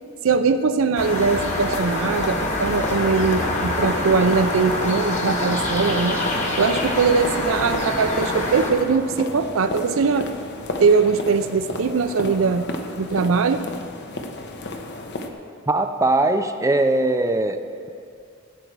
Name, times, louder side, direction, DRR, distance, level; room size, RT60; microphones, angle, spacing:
voice 1, 0.2-6.2 6.6-10.3 10.8-12.7 13.0-13.6, right 5 dB, 80° right, 10 dB, 0.5 m, -21 dB
sound 1, 1.0-8.7, left 1 dB, 35° left, 1.6 m, -25 dB
sound 2, 1.1-15.3, left 2 dB, 55° left, 1.0 m, -33 dB
voice 2, 15.7-17.6, right 2 dB, 15° right, 7 dB, 0.4 m, -20 dB
16.0 x 8.0 x 4.7 m, 2.4 s
head